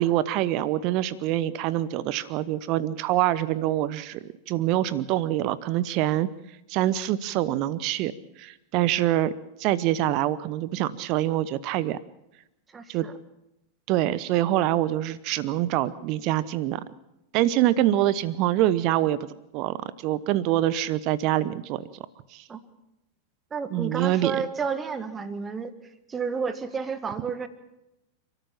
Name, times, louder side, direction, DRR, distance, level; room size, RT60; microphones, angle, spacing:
voice 1, 0.0-4.2 4.5-6.3 6.7-8.1 8.4-9.3 9.6-12.0 12.9-13.1 13.9-16.8 17.3-19.3 19.5-19.8 20.0-21.8 22.3-22.4 23.7-24.3, right 13 dB, 40° right, 17 dB, 0.9 m, -25 dB
voice 2, 12.7-13.1 22.5-22.6 23.5-25.7 26.1-27.5, right 6 dB, 20° right, 11 dB, 1.8 m, -31 dB
29.5 x 13.5 x 7.3 m, 0.90 s
figure-of-eight pair, 90°, 0 cm